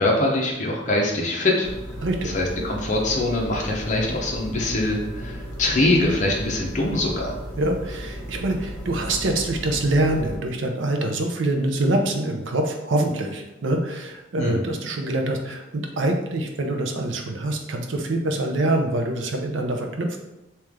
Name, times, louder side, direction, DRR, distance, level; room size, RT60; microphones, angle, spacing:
voice 1, 0.0-1.7 2.3-7.3 14.4-14.7, left 2 dB, 40° left, -1 dB, 0.7 m, -23 dB
sound 1, 1.6-10.4, equal, 5° left, 1.3 m, -35 dB
voice 2, 2.0-2.7 7.6-20.2, right 1 dB, 70° right, 3 dB, 0.6 m, -25 dB
3.2 x 2.9 x 3.5 m, 0.96 s
head